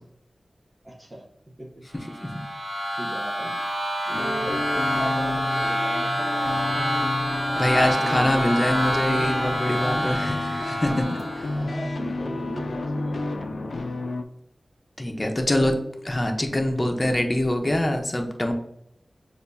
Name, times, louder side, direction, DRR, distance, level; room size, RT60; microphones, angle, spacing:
voice 1, 0.8-1.2 1.6-1.7 3.0-3.6 4.1-6.7 7.4-8.6 10.0-10.4 11.5-13.4 13.7-13.9 15.1-15.7 17.0-17.2, right 1 dB, 25° right, -5 dB, 0.9 m, -37 dB
voice 2, 1.9-2.4 7.5-11.5 15.0-15.7 16.1-18.5, left 1 dB, 25° left, 3 dB, 0.8 m, -24 dB
sound 1, 2.0-11.7, right 1 dB, 50° right, 1.5 m, -27 dB
sound 2, 4.1-14.2, left 2 dB, 80° left, 0.4 m, -31 dB
6.6 x 2.5 x 2.6 m, 0.77 s
wide cardioid pair, 80°, 0 cm